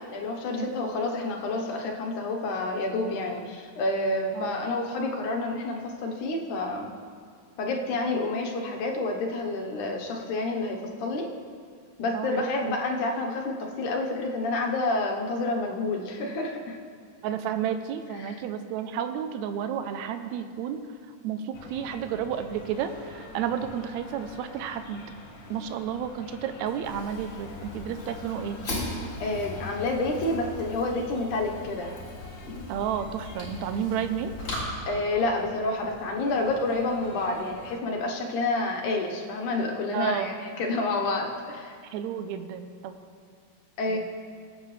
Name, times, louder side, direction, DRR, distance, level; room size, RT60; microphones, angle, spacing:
voice 1, 0.0-6.9 7.6-11.3 12.0-16.8 18.2-18.4 29.2-32.0 34.9-41.8 43.8-44.0, left 2 dB, 75° left, 1 dB, 2.5 m, -29 dB
voice 2, 12.1-12.8 17.2-20.9 21.2-25.1 25.5-28.6 32.7-34.3 39.9-40.4 41.8-42.9 43.9-44.0, right 8 dB, 80° right, 9 dB, 1.8 m, -31 dB
sound 1, 21.5-37.8, left 2 dB, 90° left, 1.0 m, -46 dB
Fire, 26.8-34.6, left 2 dB, 45° left, 3.6 m, -39 dB
20.5 x 8.6 x 3.3 m, 2.1 s
omnidirectional pair, 3.6 m